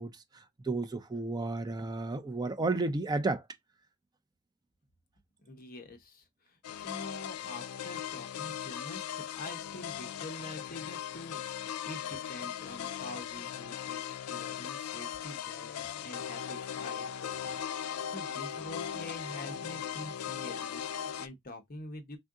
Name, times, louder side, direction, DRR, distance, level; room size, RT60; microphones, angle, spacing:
voice 1, 0.0-3.5, right 3 dB, 20° right, 0.4 m, -32 dB
voice 2, 5.4-14.0 14.3-22.2, left 1 dB, 40° left, 0.8 m, -46 dB
sound 1, 6.6-21.3, left 9 dB, 75° left, 0.4 m, -38 dB
3.6 x 2.5 x 3.5 m
head